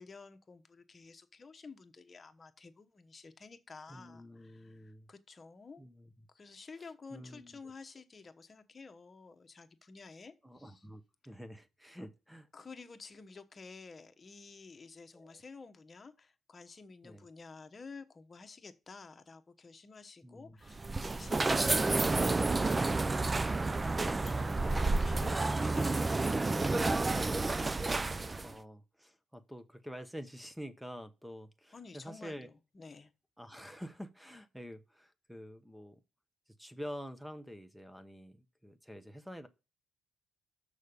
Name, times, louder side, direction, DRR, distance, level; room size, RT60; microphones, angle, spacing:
voice 1, 0.0-5.8 6.3-10.8 12.5-27.5 31.7-33.1, left 4 dB, 35° left, 1.1 m, -52 dB
voice 2, 3.9-5.1 5.8-6.3 6.8-7.6 10.4-12.5 15.1-15.4 17.0-17.3 20.2-20.6 24.6-24.8 28.4-32.5 33.4-36.0 36.6-39.5, equal, ahead, 1.0 m, -48 dB
sound 1, 20.7-28.5, right 3 dB, 20° right, 0.4 m, -30 dB
6.4 x 4.9 x 6.9 m
cardioid pair, 90°, 0 cm